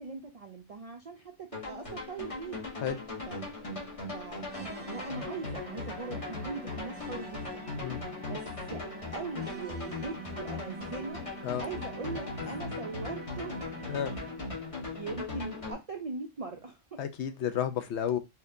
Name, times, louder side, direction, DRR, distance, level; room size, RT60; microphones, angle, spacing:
voice 1, 0.0-2.6 3.3-3.4 4.1-7.7 8.3-8.8 9.1-11.2 11.6-13.5 14.9-17.0, right 4 dB, 55° right, 3 dB, 0.4 m, -40 dB
sound 1, 1.5-15.7, left 3 dB, 30° left, 1.1 m, -39 dB
sound 2, 4.5-14.6, right 2 dB, 10° right, 1.0 m, -47 dB
voice 2, 17.0-18.2, left 9 dB, 70° left, 9 dB, 0.9 m, -31 dB
4.4 x 2.8 x 2.6 m, 0.23 s
omnidirectional pair, 1.2 m